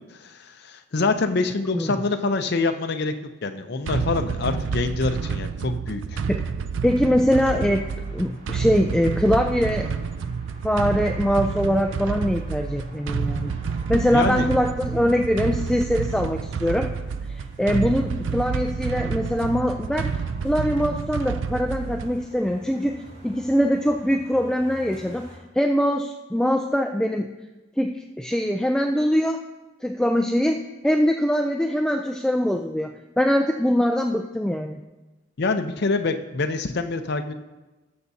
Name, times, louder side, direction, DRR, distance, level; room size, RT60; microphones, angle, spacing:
voice 1, 0.2-3.1 3.4-6.2 14.1-14.5 35.4-37.3, left 3 dB, 60° left, 7 dB, 0.6 m, -25 dB
sound 1, 3.9-22.3, right 5 dB, 75° right, 0.4 m, -29 dB
voice 2, 6.8-9.9 10.6-13.5 13.9-16.9 17.3-20.1 20.4-27.3 27.8-29.4 29.8-34.8, equal, 5° left, 4 dB, 0.3 m, -23 dB
sound 2, 7.2-25.4, equal, 40° right, 3.1 m, -49 dB
19.5 x 6.9 x 2.7 m, 1.1 s
head